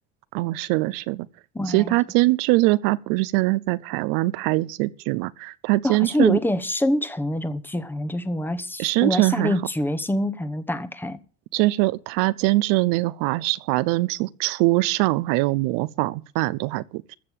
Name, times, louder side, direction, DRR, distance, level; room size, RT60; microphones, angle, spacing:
voice 1, 0.3-1.3 1.7-6.4 8.8-9.5 11.5-17.2, right 20 dB, 75° right, 0.7 m, -22 dB
voice 2, 1.5-1.9 5.8-11.2, left 1 dB, 5° left, 0.9 m, -25 dB
14.5 x 6.7 x 7.4 m
cardioid pair, 135°, 34 cm